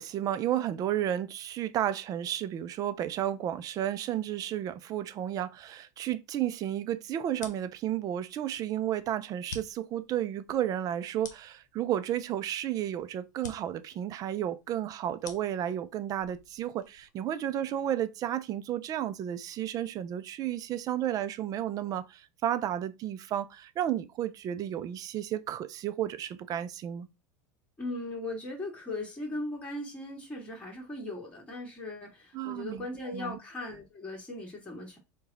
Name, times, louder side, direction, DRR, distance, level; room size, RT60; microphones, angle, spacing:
voice 1, 0.0-27.1 32.3-32.9 33.1-33.4, right 11 dB, 40° right, 0.6 m, -32 dB
sound 1, 7.3-17.2, left 5 dB, 80° left, 0.8 m, -50 dB
voice 2, 27.8-35.0, left 2 dB, 15° left, 2.0 m, -38 dB
4.7 x 2.4 x 4.0 m
hypercardioid pair, 85°, 9 cm